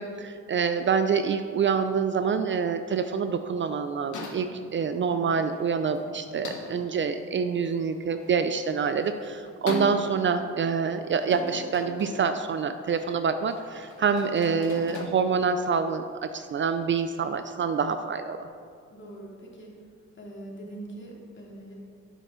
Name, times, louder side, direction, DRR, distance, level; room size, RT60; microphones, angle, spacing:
voice 1, 0.0-18.4, right 6 dB, 40° right, 9 dB, 0.4 m, -26 dB
sound 1, 4.1-15.1, left 3 dB, 75° left, 1.3 m, -41 dB
voice 2, 18.9-19.7 20.2-21.7, right 1 dB, 40° left, -2 dB, 2.3 m, -42 dB
8.4 x 8.2 x 3.7 m, 2.2 s
cardioid pair, 90°, 30 cm